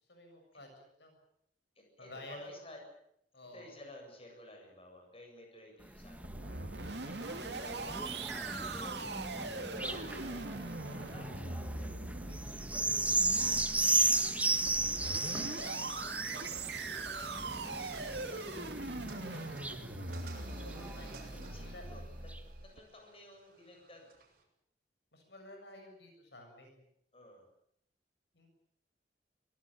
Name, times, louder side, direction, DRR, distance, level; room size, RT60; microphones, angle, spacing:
voice 1, 0.1-1.2 2.0-2.6 3.3-3.7 7.7-8.3 14.0-14.4 20.4-21.8 25.1-26.9 28.3-28.5, left 1 dB, 70° left, 4 dB, 7.3 m, -52 dB
voice 2, 1.8-2.8 3.5-6.4 8.0-9.3 9.7-13.4 15.1-19.9 21.3-22.0 22.6-24.1 27.1-27.4, left 1 dB, 35° left, 2 dB, 7.9 m, -55 dB
sound 1, 5.8-21.7 22.3-22.4, right 2 dB, 10° right, 1.6 m, -36 dB
sound 2, 6.0-22.8, right 3 dB, 75° right, 2.8 m, -42 dB
sound 3, 17.3-24.4, right 4 dB, 55° right, 7.1 m, -56 dB
24.5 x 19.0 x 8.9 m, 0.72 s
head